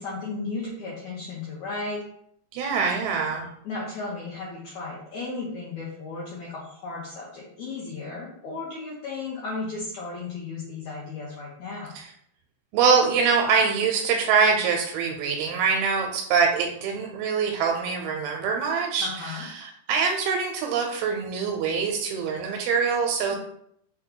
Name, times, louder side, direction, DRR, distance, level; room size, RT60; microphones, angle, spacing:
voice 1, 0.0-2.0 3.6-12.0 19.0-19.4 23.3-23.4, left 3 dB, 75° left, -6 dB, 1.7 m, -35 dB
voice 2, 2.5-3.5 12.0-12.1 12.7-23.4, right 5 dB, 90° right, 2 dB, 2.4 m, -24 dB
5.7 x 2.3 x 3.7 m, 0.71 s
omnidirectional pair, 4.3 m